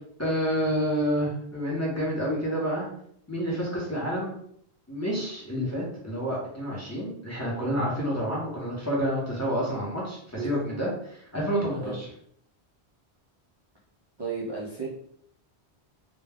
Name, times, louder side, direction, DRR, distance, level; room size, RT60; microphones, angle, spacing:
voice 1, 0.2-2.9 3.3-4.3 4.9-12.1, equal, 20° left, -6 dB, 0.6 m, -29 dB
voice 2, 14.2-14.9, right 4 dB, 40° right, -5 dB, 0.3 m, -33 dB
2.2 x 2.1 x 3.4 m, 0.67 s
omnidirectional pair, 1.1 m